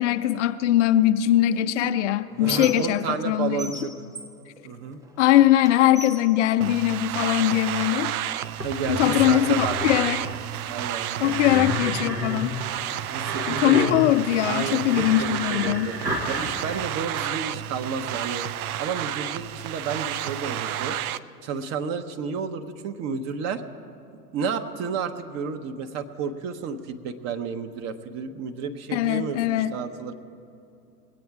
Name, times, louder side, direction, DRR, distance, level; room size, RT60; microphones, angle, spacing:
voice 1, 0.0-3.7 5.2-8.1 8.9-10.2 11.2-12.5 13.5-15.9 28.9-29.7, left 13 dB, 50° left, 10 dB, 0.5 m, -21 dB
Squeak, 1.5-3.3 3.6-5.2 5.6-7.3 8.1-8.2 8.6-9.6, right 1 dB, 10° right, 0.5 m, -40 dB
voice 2, 2.4-4.1 4.6-5.0 8.6-9.8 10.6-11.5 13.1-14.1 14.4-15.9 16.3-18.5 18.8-21.0 21.4-23.6 24.3-30.1, right 6 dB, 35° right, 8 dB, 0.8 m, -31 dB
sound 1, 6.6-21.2, right 11 dB, 65° right, 0.5 m, -31 dB
sound 2, 8.6-10.3 11.2-16.8, equal, 85° right, 2.0 m, -32 dB
20.5 x 8.5 x 4.7 m, 2.5 s
figure-of-eight pair, 90°, 47 cm